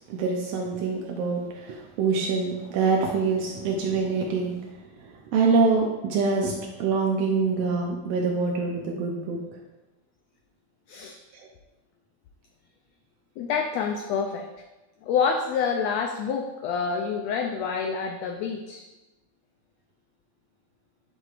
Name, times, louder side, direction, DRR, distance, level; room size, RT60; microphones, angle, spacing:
voice 1, 0.1-4.6 4.9-9.4, right 4 dB, 75° right, 0 dB, 1.5 m, -25 dB
voice 2, 13.4-14.5 15.0-18.8, left 6 dB, 90° left, 3 dB, 1.5 m, -27 dB
11.0 x 6.5 x 2.5 m, 1.1 s
omnidirectional pair, 3.6 m